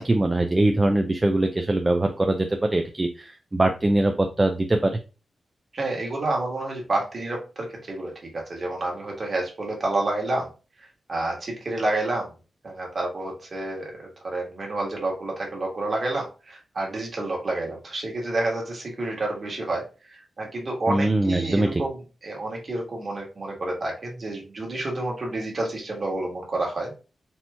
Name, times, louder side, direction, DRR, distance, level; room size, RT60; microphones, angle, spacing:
voice 1, 0.0-4.9 20.9-21.8, right 2 dB, 15° right, 4 dB, 0.4 m, -22 dB
voice 2, 5.7-10.5 11.1-12.3 12.6-19.8 20.1-22.0 22.2-26.9, right 2 dB, 35° right, -1 dB, 1.5 m, -29 dB
4.2 x 2.9 x 3.3 m, 0.33 s
wide cardioid pair, 175°, 0 cm